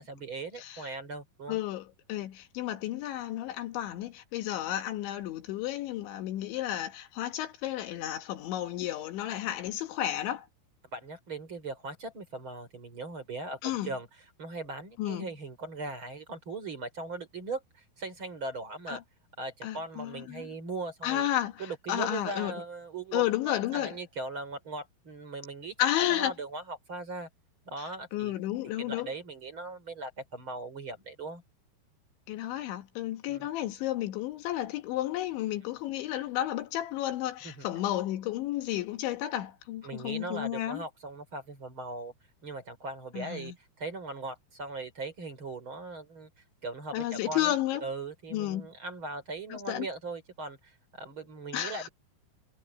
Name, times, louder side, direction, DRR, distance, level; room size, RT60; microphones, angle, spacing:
voice 1, 0.0-1.6 10.9-19.0 19.4-21.3 21.6-27.3 27.6-28.4 28.8-31.4 33.3-33.5 37.4-37.7 39.8-42.1 42.4-43.5 43.8-46.3 46.6-47.5 47.8-51.9, right 3 dB, 30° right, 4.3 m, -39 dB
voice 2, 1.5-10.5 13.6-13.9 15.0-15.3 18.9-19.0 19.6-20.5 21.0-21.6 21.9-22.6 23.1-24.0 25.8-26.3 28.1-29.1 32.3-40.8 43.1-43.5 46.9-47.9 48.3-48.7 49.5-49.9 51.5-51.9, left 13 dB, 85° left, 4.0 m, -32 dB
omnidirectional pair, 5.2 m